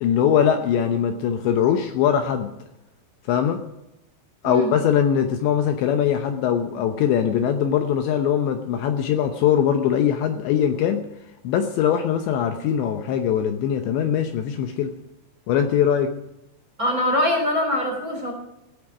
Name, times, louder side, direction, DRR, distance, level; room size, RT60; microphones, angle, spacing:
voice 1, 0.0-2.5 3.3-3.6 4.4-11.0 11.4-14.9 15.5-16.1, left 8 dB, 75° left, 6 dB, 2.8 m, -21 dB
voice 2, 16.8-18.3, left 1 dB, 20° right, 1 dB, 2.7 m, -23 dB
17.0 x 9.3 x 6.1 m, 0.89 s
omnidirectional pair, 5.8 m